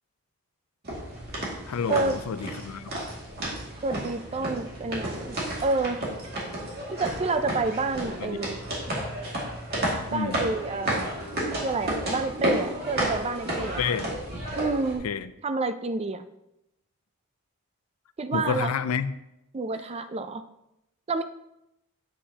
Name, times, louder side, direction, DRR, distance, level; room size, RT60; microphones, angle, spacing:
sound 1, 0.8-14.9, right 1 dB, 45° right, 2.2 m, -32 dB
voice 1, 1.7-2.9 8.2-8.4 10.1-10.4 13.6-14.1 15.0-15.3 18.3-19.1, left 6 dB, 80° left, 13 dB, 0.4 m, -29 dB
voice 2, 3.8-5.4 5.6-6.0 6.9-8.6 10.1-11.1 11.6-13.8 14.6-15.1 15.4-16.2 18.2-18.7 19.5-20.4 21.1-21.2, right 3 dB, 30° right, 11 dB, 0.4 m, -28 dB
8.3 x 7.6 x 2.9 m, 0.87 s
head